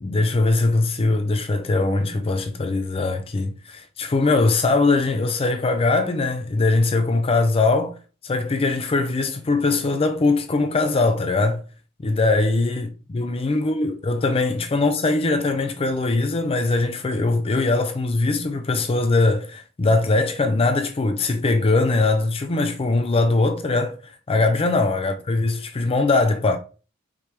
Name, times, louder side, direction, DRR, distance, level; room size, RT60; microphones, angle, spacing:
voice 1, 0.0-7.9 8.2-11.6 12.0-12.9 13.1-26.6, left 3 dB, 30° left, 0.4 m, -21 dB
5.0 x 3.0 x 3.3 m
head